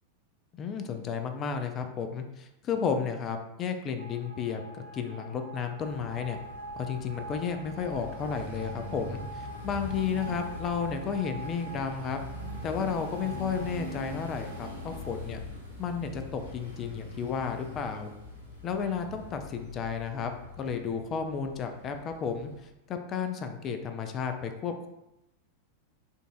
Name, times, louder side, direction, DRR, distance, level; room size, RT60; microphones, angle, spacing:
voice 1, 0.5-6.4 6.8-9.2 9.6-12.2 12.6-15.4 15.8-18.1 18.6-20.3 20.6-22.5 22.9-24.9, left 6 dB, 30° left, 6 dB, 0.3 m, -32 dB
sound 1, 4.0-15.1, right 2 dB, 65° right, 0.5 m, -45 dB
sound 2, 5.8-22.6, left 2 dB, 80° left, 0.9 m, -43 dB
3.8 x 2.4 x 2.3 m, 0.90 s
figure-of-eight pair, 90°, 0 cm